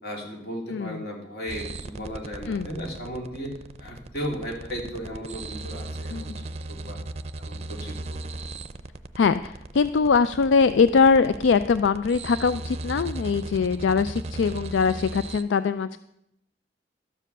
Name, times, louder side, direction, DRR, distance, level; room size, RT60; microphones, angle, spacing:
voice 1, 0.0-6.3 6.7-7.0 7.4-7.9, equal, 55° left, 0 dB, 2.9 m, -35 dB
voice 2, 0.7-1.0 2.5-2.7 6.1-6.3 9.2-16.0, left 5 dB, 80° left, 13 dB, 0.4 m, -22 dB
sound 1, 1.5-15.4, right 2 dB, 35° right, 0.6 m, -37 dB
12.5 x 7.5 x 6.7 m, 0.82 s
head